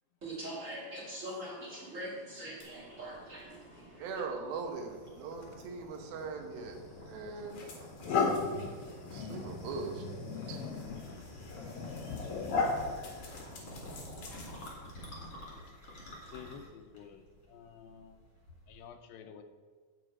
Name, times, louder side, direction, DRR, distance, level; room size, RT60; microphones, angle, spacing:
voice 1, 0.2-4.2, right 1 dB, 35° right, -3 dB, 1.2 m, -43 dB
sound 1, 2.6-18.9, left 1 dB, 30° left, 2.8 m, -50 dB
voice 2, 4.0-7.6 9.1-10.6 14.7-14.9 16.3-16.5, right 4 dB, 85° right, 4 dB, 2.9 m, -41 dB
sound 2, 6.7-6.9 7.5-14.9, left 4 dB, 50° left, 2.1 m, -36 dB
voice 3, 16.3-17.2 17.5-18.2 18.7-19.4, left 7 dB, 85° left, 8 dB, 2.4 m, -50 dB
9.2 x 7.7 x 4.9 m, 1.5 s
omnidirectional pair, 4.1 m